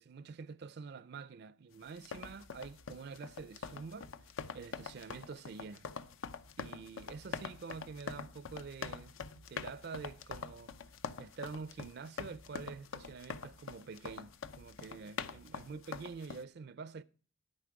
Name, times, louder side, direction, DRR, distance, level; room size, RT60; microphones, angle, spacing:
voice 1, 0.0-4.1 4.5-5.9 6.6-9.1 9.5-10.7 11.2-17.0, right 5 dB, 55° right, 0.4 m, -47 dB
sound 1, 1.9-16.4, left 5 dB, 80° left, 0.6 m, -45 dB
10.5 x 8.7 x 4.7 m
head